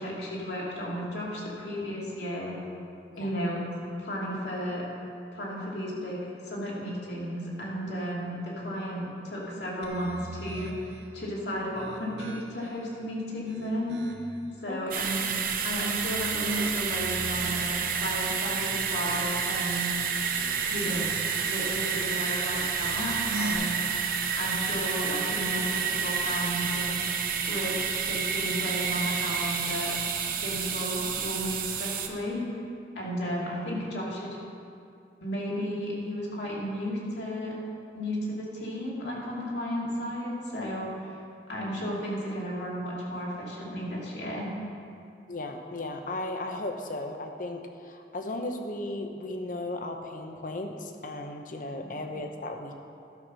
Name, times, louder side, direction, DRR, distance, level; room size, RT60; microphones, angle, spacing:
voice 1, 0.0-2.6 3.2-3.6 4.0-4.9 5.3-13.9 14.6-15.3 15.6-19.9 20.7-21.1 21.4-23.8 24.4-27.0 27.5-29.9 30.4-32.4 32.9-34.4 35.2-37.5 37.9-41.1 41.5-44.5 51.8-51.9, equal, 75° left, -5 dB, 2.7 m, -33 dB
sound 1, 9.8-11.1 11.7-12.8 13.3-14.4 15.9-18.0 18.5-19.7 20.2-21.3 22.7-23.5, right 2 dB, 80° right, 0.9 m, -40 dB
sound 2, 14.9-32.1, right 6 dB, 50° right, 0.8 m, -30 dB
voice 2, 45.3-52.7, left 2 dB, 50° left, 4 dB, 0.9 m, -36 dB
12.0 x 5.9 x 6.2 m, 2.5 s
head